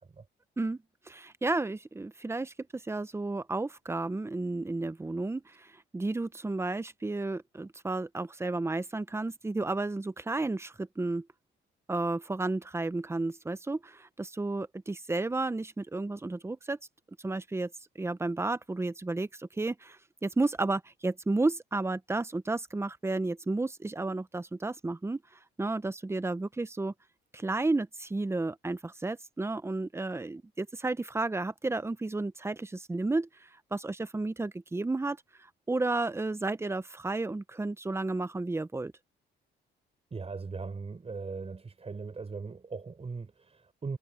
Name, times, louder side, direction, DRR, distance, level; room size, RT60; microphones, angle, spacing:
voice 1, 1.1-11.3 11.9-16.8 17.2-17.7 18.0-25.2 25.6-26.9 27.3-35.2 35.7-38.9, right 2 dB, 15° right, 0.8 m, -32 dB
voice 2, 40.1-44.0, right 4 dB, 30° right, 5.4 m, -39 dB
cardioid pair, 90°, 20 cm